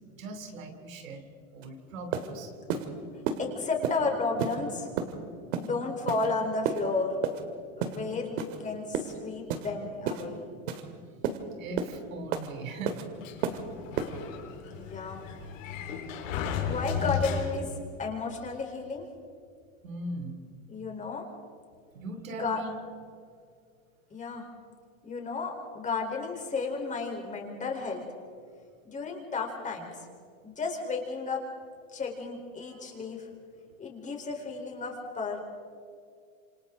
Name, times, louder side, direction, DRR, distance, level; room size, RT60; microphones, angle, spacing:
voice 1, 0.2-1.3 1.5-2.9 11.6-13.0 19.8-20.4 21.9-22.7 32.6-32.9, right 2 dB, 85° right, 6 dB, 3.1 m, -39 dB
sound 1, 1.6-1.7 2.1-2.3 2.7-2.9 3.3-3.4 3.8-4.0 4.4-4.6 5.0-5.1 5.5-5.7 6.1-6.3 6.7-6.8 7.2-7.4 7.8-8.0 8.4-8.6 8.9-9.1 9.5-9.7 10.1-10.2 10.7-10.8 11.2-11.4 11.8-11.9 12.3-12.5 12.9-13.0 13.4-13.6 14.0-14.1, right 8 dB, 70° right, 2.4 m, -30 dB
voice 2, 2.2-2.8 3.4-4.9 5.6-7.2 7.8-10.5 14.7-15.2 16.6-17.7 18.0-19.1 20.7-21.2 22.4-22.6 24.1-24.5 25.0-28.0 28.8-30.0 30.4-31.4 31.9-33.3 33.8-35.4, left 4 dB, 20° left, 1 dB, 4.1 m, -33 dB
Sliding door, 13.2-17.9, left 6 dB, 75° left, 4.2 m, -34 dB
27.5 x 27.0 x 3.9 m, 2.3 s
supercardioid pair, 130°, 39 cm